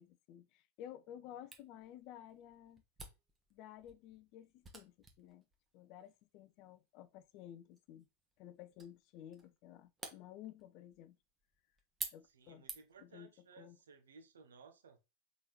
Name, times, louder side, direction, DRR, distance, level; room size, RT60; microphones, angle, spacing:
voice 1, 0.0-2.8 3.5-5.4 5.7-8.1 8.4-11.2 12.1-12.7 13.0-13.3 13.6-13.8, left 11 dB, 40° left, 0.4 m, -54 dB
Camera, 1.5-13.1, right 4 dB, 15° right, 1.0 m, -53 dB
voice 2, 12.2-15.0, right 5 dB, 65° right, 0.9 m, -60 dB
3.9 x 3.8 x 3.1 m
figure-of-eight pair, 90°, 0 cm